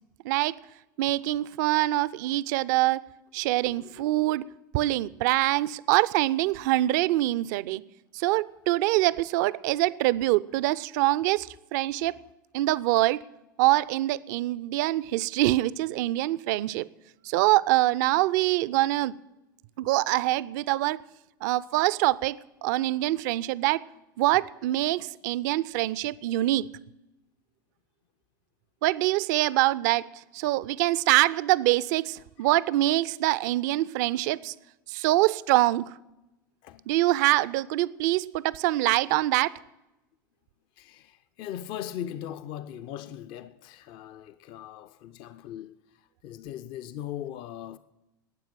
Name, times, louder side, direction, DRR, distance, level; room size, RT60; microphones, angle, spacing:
voice 1, 0.2-0.5 1.0-3.0 3.3-4.4 4.7-7.8 8.1-12.2 12.5-13.2 13.6-16.9 17.2-19.2 19.8-21.0 21.4-23.8 24.2-26.7 28.8-34.5 34.9-35.9 36.9-39.6, right 17 dB, 55° right, 0.4 m, -24 dB
voice 2, 3.6-4.2 32.4-32.5 36.6-36.9 40.8-47.8, left 11 dB, 45° left, 0.5 m, -40 dB
12.5 x 9.1 x 8.8 m
hypercardioid pair, 85°, 11 cm